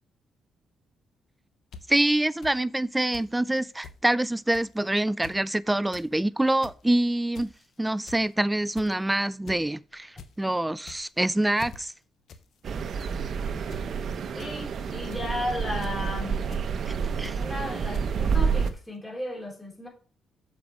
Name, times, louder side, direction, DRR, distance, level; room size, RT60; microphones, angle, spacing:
sound 1, 1.7-1.8 2.4-2.5 3.1-3.3 3.6-4.0 4.5-4.7 5.1-5.4 5.7-6.1 6.5-6.8 7.3-7.6 8.1-8.3 8.7-9.0 9.5-9.6 9.9-10.3 10.8-11.2 11.6-11.8 12.3-12.4 12.7-13.1 13.7-13.8 14.4-14.5 15.1-15.4 15.8-16.1 16.5-16.7 17.2-17.3 17.9-18.1 18.6-18.8, left 6 dB, 65° left, 0.9 m, -44 dB
voice 1, 1.9-7.5 7.8-11.9 17.2-17.4, right 1 dB, 10° right, 0.3 m, -25 dB
sound 2, 12.6-18.7, right 6 dB, 55° right, 0.8 m, -29 dB
voice 2, 14.3-16.4 17.3-19.9, left 1 dB, 15° left, 3.7 m, -34 dB
6.9 x 5.3 x 4.6 m
cardioid pair, 90°, 0 cm